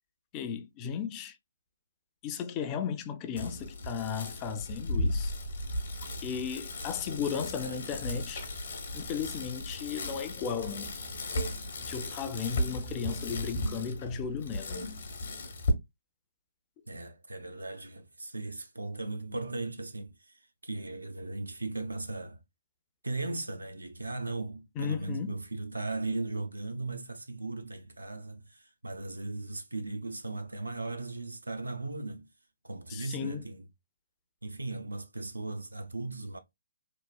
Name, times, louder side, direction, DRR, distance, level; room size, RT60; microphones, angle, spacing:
voice 1, 0.3-1.4 2.2-5.3 6.2-8.5 8.9-11.1 11.8-14.9 24.8-25.4 32.9-33.4, left 7 dB, 25° left, 0.4 m, -35 dB
Bicycle, 3.4-15.7, left 1 dB, 60° left, 0.8 m, -36 dB
voice 2, 16.9-22.4 23.0-32.3 32.6-33.7 34.4-36.4, right 2 dB, 90° right, 0.4 m, -37 dB
3.0 x 2.0 x 2.2 m
figure-of-eight pair, 135°, 0 cm